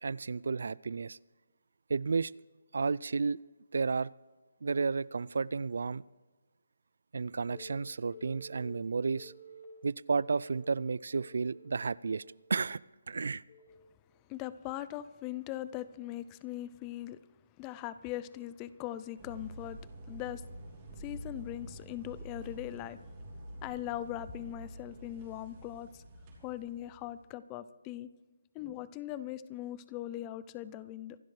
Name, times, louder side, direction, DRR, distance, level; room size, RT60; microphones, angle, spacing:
voice 1, 0.0-1.2 1.9-2.3 2.7-3.4 3.7-4.1 4.6-6.0 7.1-9.3 9.8-12.2 12.5-12.8 13.1-13.4, right 4 dB, 65° right, 0.3 m, -32 dB
Telephone, 7.5-7.6 8.1-8.6 9.1-9.6 10.1-10.6 11.1-11.7 12.1-12.5 13.5-13.7, right 1 dB, 45° left, 4.8 m, -52 dB
voice 2, 14.3-17.2 17.6-19.8 20.1-20.4 21.0-23.0 23.6-26.0 26.4-28.1 28.5-31.2, left 13 dB, 15° left, 0.4 m, -40 dB
sound 1, 19.2-27.3, right 1 dB, 25° right, 3.2 m, -48 dB
25.0 x 12.0 x 3.3 m
hypercardioid pair, 170°, 0 cm